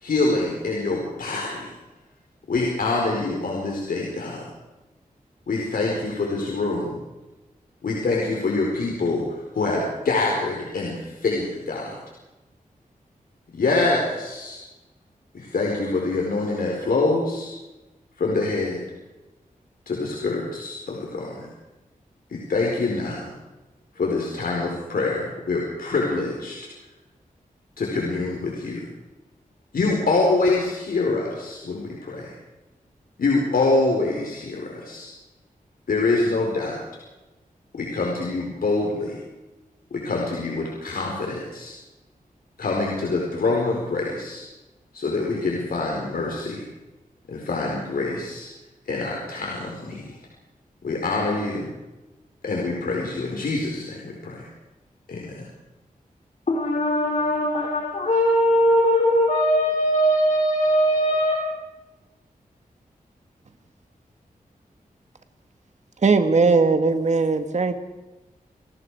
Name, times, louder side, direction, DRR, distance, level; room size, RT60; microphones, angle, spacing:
voice 1, 0.0-1.7 2.5-4.4 5.5-7.0 7.8-12.0 13.5-14.6 15.3-17.5 18.2-18.8 19.9-21.5 22.3-23.3 23.9-26.6 27.8-28.9 29.7-32.3 33.2-35.1 35.9-36.8 37.7-39.2 39.9-41.7 42.6-44.4 44.9-46.7 47.3-48.5 48.9-50.0 50.8-51.7 52.4-54.4 55.1-55.4, left 3 dB, 80° left, -1 dB, 4.6 m, -25 dB
voice 2, 56.5-61.4, equal, 55° left, -2 dB, 4.4 m, -20 dB
voice 3, 66.0-67.7, right 4 dB, 50° right, 8 dB, 1.9 m, -19 dB
28.5 x 19.0 x 5.0 m, 1.1 s
wide cardioid pair, 125°, 15 cm